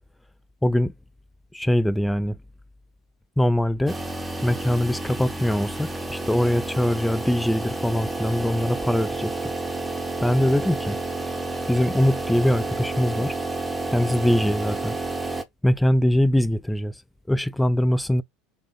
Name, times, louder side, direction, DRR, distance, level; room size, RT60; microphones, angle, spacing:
voice 1, 0.6-0.9 1.5-2.4 3.4-4.0 4.4-9.5 10.2-11.0 11.7-13.3 13.9-14.9 15.6-17.0 17.3-18.2, left 1 dB, 5° left, 0.3 m, -22 dB
sound 1, 3.9-15.4, right 2 dB, 10° right, 0.8 m, -30 dB
3.6 x 2.5 x 4.0 m
hypercardioid pair, 80°, 0 cm